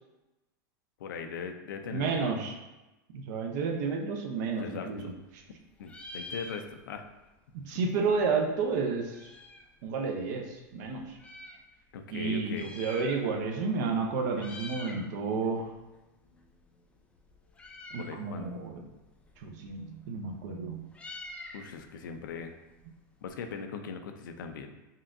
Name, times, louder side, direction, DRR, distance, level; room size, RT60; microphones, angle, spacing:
voice 1, 1.0-2.4 4.6-5.1 5.8-7.0 11.9-12.7 18.0-18.5 21.5-22.6 23.2-24.7, left 6 dB, 90° left, 6 dB, 0.5 m, -40 dB
voice 2, 1.9-2.5 3.1-5.1 7.5-9.3 9.8-11.2 12.1-15.7 17.9-18.8 19.4-20.9, right 4 dB, 65° right, 3 dB, 0.7 m, -31 dB
Meow, 4.5-5.5 5.8-7.1 7.4-7.5 7.6-9.8 10.4-11.6 12.4-13.6 13.8-14.0 14.3-15.1 15.4-23.3, left 2 dB, 10° left, 0.4 m, -47 dB
5.4 x 2.5 x 2.6 m, 1.0 s
supercardioid pair, 125°, 10 cm